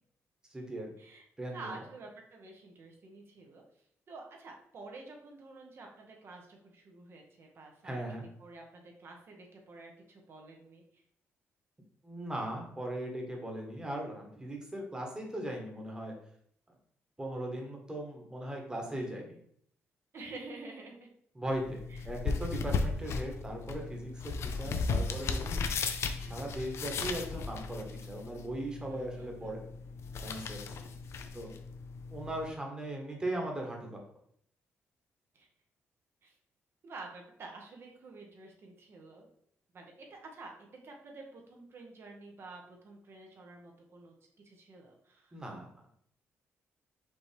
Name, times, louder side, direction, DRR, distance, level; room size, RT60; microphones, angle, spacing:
voice 1, 0.5-0.9 1.4-1.7 7.8-8.3 12.0-16.1 17.2-19.4 21.3-25.7 26.2-29.6 30.2-30.6 31.3-31.5 32.1-33.9 45.3-46.0, right 1 dB, 15° right, 0 dB, 1.4 m, -38 dB
voice 2, 1.5-3.6 4.1-8.0 8.4-10.8 20.1-21.1 21.9-22.1 28.9-29.6 35.3-35.5 36.2-36.3 36.8-39.3 39.7-44.1 44.4-45.4, right 3 dB, 55° right, 1 dB, 1.2 m, -49 dB
sound 1, 21.5-32.5, left 4 dB, 65° left, 0.5 m, -36 dB
5.1 x 3.0 x 3.4 m, 0.68 s
cardioid pair, 80°, 5 cm